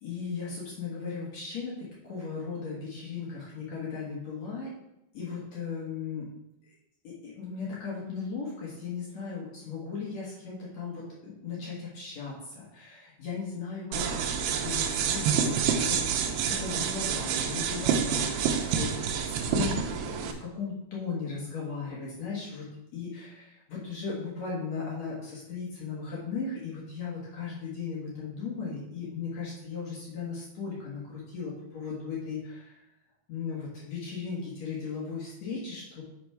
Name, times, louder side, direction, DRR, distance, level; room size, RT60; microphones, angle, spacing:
voice 1, 0.0-4.7 5.1-6.3 7.0-22.6 22.9-32.8 33.3-36.0, left 5 dB, 65° left, -5 dB, 1.7 m, -37 dB
sound 1, 13.9-20.3, right 7 dB, 90° right, 2.3 m, -28 dB
6.3 x 6.2 x 4.6 m, 0.84 s
omnidirectional pair, 5.6 m